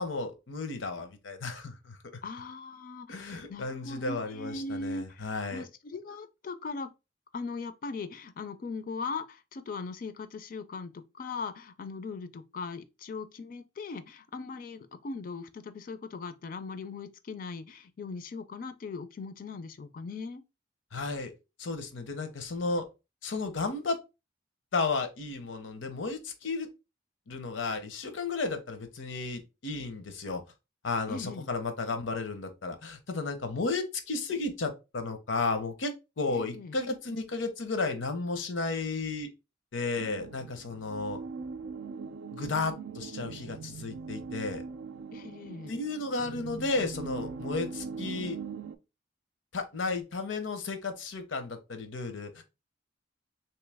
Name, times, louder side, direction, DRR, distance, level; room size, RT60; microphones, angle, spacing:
voice 1, 0.0-2.0 3.1-5.6 20.9-21.3 21.6-22.8 23.2-24.0 24.7-26.7 27.3-30.4 30.8-39.3 39.7-41.2 42.3-44.6 45.7-48.4 49.5-52.4, left 3 dB, 80° left, 0.7 m, -33 dB
voice 2, 2.2-6.9 7.3-20.4 31.1-31.5 36.3-36.8 45.1-45.7, left 4 dB, 45° left, 0.4 m, -39 dB
sound 1, 40.0-48.8, right 5 dB, 85° right, 0.3 m, -41 dB
3.0 x 2.8 x 3.3 m
head